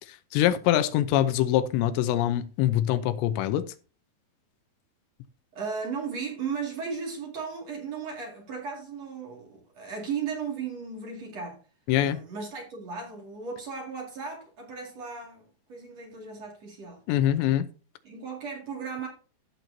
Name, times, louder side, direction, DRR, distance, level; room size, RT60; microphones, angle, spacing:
voice 1, 0.3-3.7 11.9-12.2 17.1-17.7, left 12 dB, 80° left, 2.8 m, -24 dB
voice 2, 5.5-11.7 12.0-17.0 18.0-19.1, right 5 dB, 45° right, 2.8 m, -36 dB
15.5 x 6.0 x 2.7 m
omnidirectional pair, 5.2 m